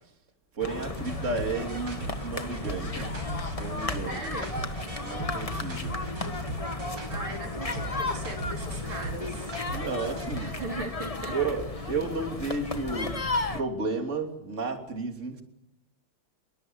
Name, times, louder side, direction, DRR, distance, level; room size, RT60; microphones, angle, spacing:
voice 1, 0.5-3.2 3.5-4.2 5.0-5.9 9.7-10.6 11.3-13.1 13.5-15.4, right 3 dB, 35° right, 3 dB, 3.4 m, -32 dB
sound 1, 0.6-13.6, left 2 dB, 20° left, 1.3 m, -34 dB
sound 2, 1.0-10.5, right 1 dB, 65° right, 5.7 m, -38 dB
voice 2, 4.0-4.6 7.1-9.5 10.4-11.3, right 2 dB, 85° right, 2 dB, 4.6 m, -38 dB
28.0 x 23.0 x 8.1 m, 0.81 s
omnidirectional pair, 2.2 m